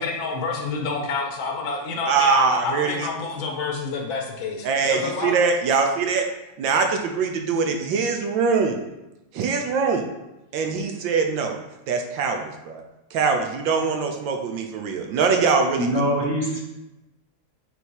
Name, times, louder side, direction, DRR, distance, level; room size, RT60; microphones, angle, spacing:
voice 1, 0.0-5.3, left 4 dB, 70° left, 2 dB, 1.7 m, -28 dB
voice 2, 2.1-3.1 4.6-6.3 6.6-8.8 9.3-10.0 10.5-11.6 11.9-12.8 13.1-15.9, right 5 dB, 75° right, 4 dB, 1.3 m, -22 dB
voice 3, 15.8-16.6, equal, 40° right, -3 dB, 1.2 m, -23 dB
8.2 x 3.5 x 4.6 m, 0.96 s
omnidirectional pair, 2.3 m